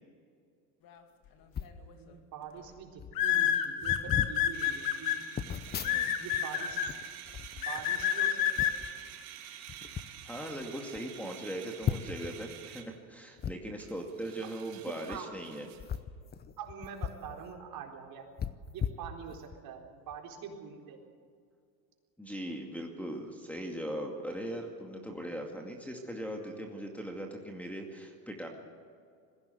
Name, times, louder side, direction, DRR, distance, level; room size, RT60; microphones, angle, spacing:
sound 1, 1.5-1.8 2.6-2.7 3.0-3.2 3.8-4.4 5.4-6.4 6.7-8.1 8.6-8.9 9.7-10.1 10.6-10.7 10.9-11.0 11.8-12.3 13.4-13.5 15.0-15.2 15.8-17.3 17.6-17.7 18.4-19.6 20.1-20.2, left 8 dB, 20° left, 0.8 m, -37 dB
sound 2, 1.6-1.9 3.1-5.1 5.8-6.9 7.6-8.7, left 10 dB, 45° left, 2.3 m, -28 dB
voice 1, 1.9-5.4 6.2-7.0 7.5-8.8 14.4-14.5 14.8-15.3 16.6-18.3 18.7-21.0, right 7 dB, 50° right, 1 dB, 4.1 m, -45 dB
sound 3, 4.5-12.9 13.4-13.5 13.8-16.0, right 11 dB, 70° right, 3.3 m, -49 dB
voice 2, 5.8-6.1 9.8-15.7 22.2-28.5, right 1 dB, 5° left, -1 dB, 2.3 m, -40 dB
21.0 x 16.0 x 8.0 m, 2.2 s
supercardioid pair, 110°, 46 cm